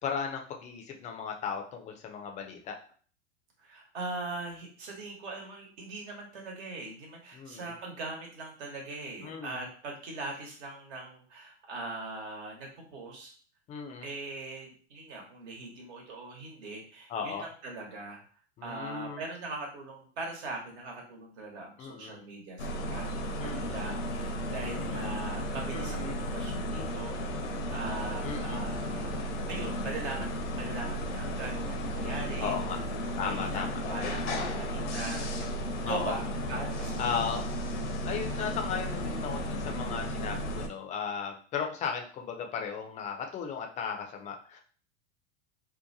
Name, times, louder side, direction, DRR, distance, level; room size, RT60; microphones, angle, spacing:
voice 1, 0.0-2.8 7.3-7.7 9.2-9.7 13.7-14.1 17.1-17.4 18.6-19.2 21.8-22.2 23.4-23.8 25.7-26.2 28.2-28.6 32.4-32.8 33.2-33.8 35.8-36.2 37.0-37.4 38.0-44.6, left 6 dB, 20° left, 3 dB, 0.4 m, -36 dB
voice 2, 3.6-13.3 14.0-18.2 18.6-29.2 29.5-32.5 33.1-35.5 35.8-37.4, right 2 dB, 65° right, 0 dB, 1.2 m, -41 dB
sound 1, 22.6-40.7, equal, 75° left, 0.6 m, -34 dB
2.7 x 2.1 x 2.6 m, 0.43 s
hypercardioid pair, 95°, 36 cm